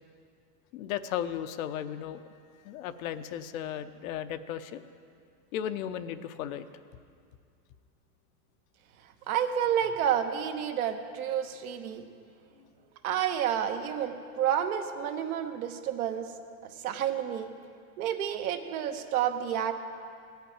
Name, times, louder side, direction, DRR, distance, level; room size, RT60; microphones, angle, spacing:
voice 1, 0.7-2.2 2.6-4.8 5.5-6.6 12.6-12.7, left 10 dB, 65° left, 10 dB, 0.8 m, -35 dB
voice 2, 9.3-12.0 13.0-16.3 16.8-17.5 18.0-19.7, right 9 dB, 75° right, 6 dB, 1.2 m, -30 dB
16.0 x 5.8 x 8.9 m, 2.3 s
supercardioid pair, 125°, 44 cm